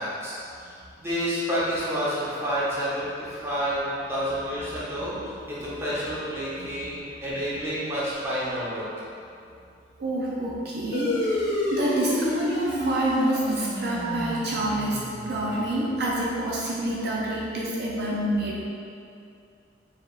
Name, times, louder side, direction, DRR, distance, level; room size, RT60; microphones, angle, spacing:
voice 1, 0.0-8.9, equal, 15° right, -9 dB, 0.9 m, -29 dB
voice 2, 6.5-6.9 10.0-11.4 11.7-18.6, right 1 dB, 60° right, -5 dB, 0.5 m, -27 dB
sound 1, 10.9-15.8, left 1 dB, 60° left, 0.9 m, -29 dB
4.7 x 3.4 x 2.4 m, 2.5 s
head